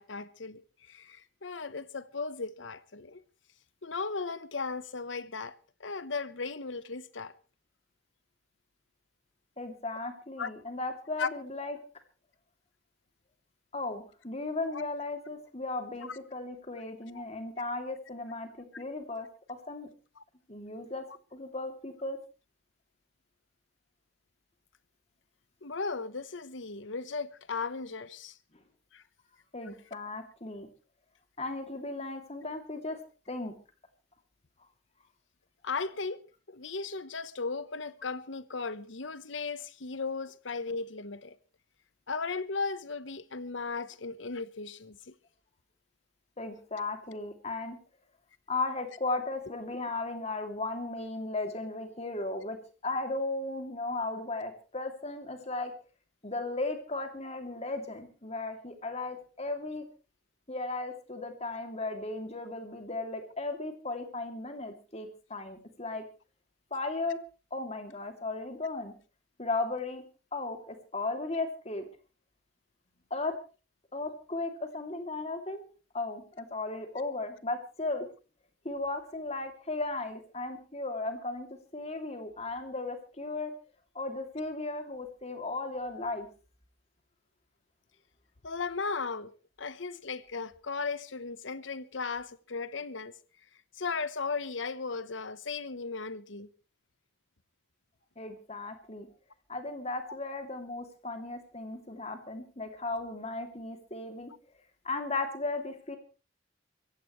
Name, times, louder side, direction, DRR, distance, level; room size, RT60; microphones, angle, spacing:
voice 1, 0.0-3.2 3.8-7.3 10.4-10.5 11.2-11.3 14.7-14.8 16.1-16.2 20.2-20.3 25.6-28.4 28.9-29.0 35.6-36.2 36.5-41.4 42.1-45.1 88.4-89.3 89.6-93.1 93.7-96.5, left 4 dB, 75° left, 1.0 m, -36 dB
voice 2, 9.6-11.8 13.7-19.9 20.5-21.0 21.3-22.2 29.5-30.7 31.4-33.0 33.3-33.5 46.4-47.8 48.5-52.6 52.8-55.7 56.2-59.9 60.5-66.0 66.7-67.2 67.5-68.9 69.4-70.0 70.3-71.8 73.1-73.4 73.9-75.6 75.9-78.1 78.6-81.5 81.7-83.5 83.9-86.3 98.2-99.1 99.5-104.3 104.8-106.0, left 2 dB, 35° left, 2.7 m, -36 dB
25.0 x 15.5 x 3.2 m
head